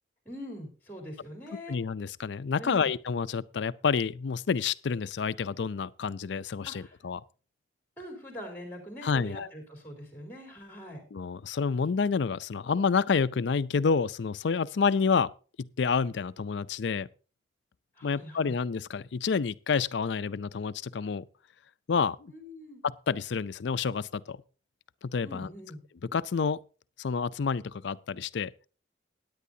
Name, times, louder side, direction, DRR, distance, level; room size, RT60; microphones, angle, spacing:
voice 1, 0.3-1.8 2.6-2.9 6.7-6.9 8.0-11.0 18.0-18.6 22.3-22.8 25.2-25.8, equal, 10° left, 3.8 m, -43 dB
voice 2, 1.7-7.2 9.0-9.5 11.1-15.3 15.6-17.1 18.0-21.2 21.9-22.3 22.8-24.4 25.0-25.5 26.1-26.6 27.0-28.5, left 5 dB, 70° left, 0.4 m, -29 dB
17.0 x 10.0 x 2.7 m
head